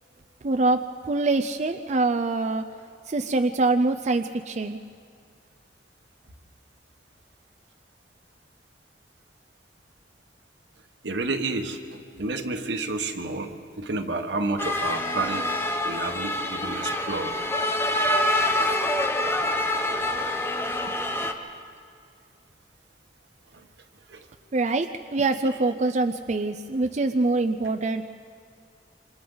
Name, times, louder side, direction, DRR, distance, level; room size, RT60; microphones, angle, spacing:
voice 1, 0.4-0.8 1.1-2.6 3.1-4.8 24.5-28.0, right 3 dB, 40° right, 7 dB, 0.5 m, -24 dB
voice 2, 11.0-11.8 12.2-15.5 15.8-17.4 24.1-24.2, right 2 dB, 85° right, 5 dB, 1.4 m, -30 dB
sound 1, 14.6-21.3, left 1 dB, 15° left, 1.0 m, -26 dB
27.5 x 26.0 x 3.9 m, 2.2 s
head